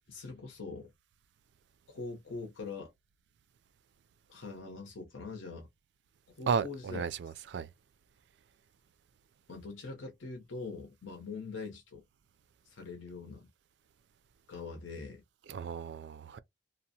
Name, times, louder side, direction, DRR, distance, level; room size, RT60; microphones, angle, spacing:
voice 1, 0.1-0.9 1.9-2.9 4.3-5.7 6.4-7.0 9.5-12.0 12.7-13.5 14.5-15.2, left 4 dB, 85° left, 0.7 m, -43 dB
voice 2, 6.5-7.7 15.5-16.4, right 6 dB, 65° right, 0.3 m, -34 dB
2.8 x 2.0 x 2.7 m
head